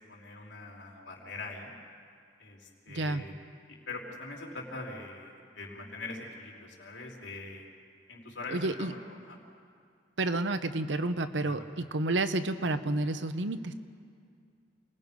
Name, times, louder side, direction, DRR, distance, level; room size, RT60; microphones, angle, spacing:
voice 1, 0.1-1.7 2.4-3.3 3.7-7.7 8.1-9.0 9.3-9.4 11.4-11.6, left 3 dB, 90° left, -2 dB, 3.9 m, -43 dB
voice 2, 8.5-8.9 10.2-13.7, right 2 dB, 85° right, 10 dB, 1.0 m, -30 dB
29.0 x 20.0 x 5.4 m, 2.3 s
head